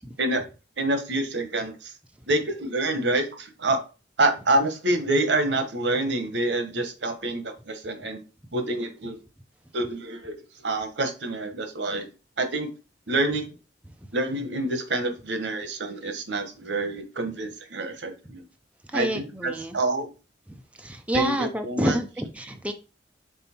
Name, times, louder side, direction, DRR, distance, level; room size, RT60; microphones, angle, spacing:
voice 1, 0.8-1.9 2.3-3.8 4.2-8.2 8.5-9.2 9.7-10.3 10.6-12.1 12.4-12.7 13.1-13.5 14.1-18.4 18.9-20.1 21.1-22.0, right 2 dB, 85° right, 7 dB, 1.2 m, -27 dB
voice 2, 18.9-19.8 20.5-22.7, right 1 dB, 10° right, 5 dB, 0.6 m, -29 dB
5.4 x 4.0 x 4.4 m, 0.32 s
head